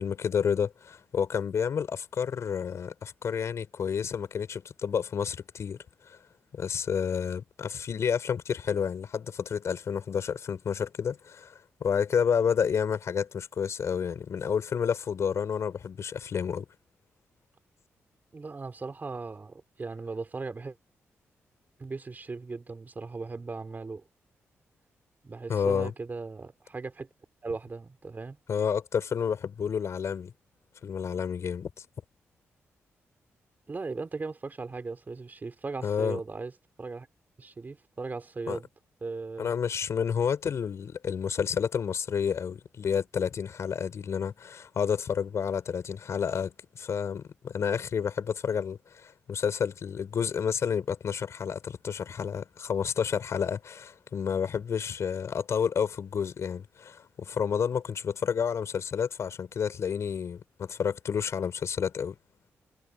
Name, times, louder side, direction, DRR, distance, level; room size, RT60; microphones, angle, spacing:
voice 1, 0.0-6.2 6.5-16.6 25.5-25.9 28.5-30.3 30.8-31.8 35.8-36.2 38.5-38.6 39.4-62.2, left 7 dB, 65° left, 4.7 m, -30 dB
voice 2, 18.3-20.8 21.8-24.0 25.2-27.1 27.4-28.4 33.7-36.5 36.8-37.1 37.4-38.7 39.0-39.5, right 3 dB, 35° right, 3.5 m, -38 dB
cardioid pair, 75°, 5 cm